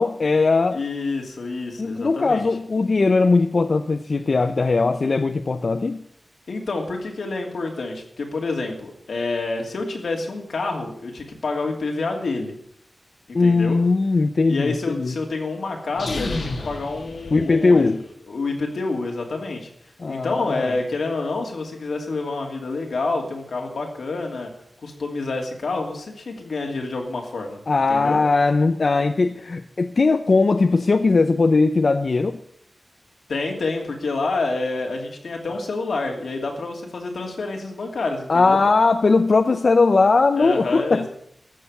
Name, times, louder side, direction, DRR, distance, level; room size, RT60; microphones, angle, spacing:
voice 1, 0.0-0.8 1.8-6.0 13.3-15.1 17.3-18.0 20.0-20.7 27.7-32.4 38.3-41.1, left 3 dB, 55° left, 8 dB, 0.6 m, -19 dB
voice 2, 0.7-2.5 6.5-12.5 13.3-13.8 14.5-17.9 18.3-19.7 20.1-24.5 24.8-27.6 27.9-28.2 33.3-38.6 40.4-41.1, left 3 dB, 90° left, 1 dB, 2.7 m, -28 dB
sound 1, 15.9-18.0, left 2 dB, 75° left, 1.8 m, -31 dB
14.0 x 6.8 x 8.1 m, 0.70 s
wide cardioid pair, 95°, 0 cm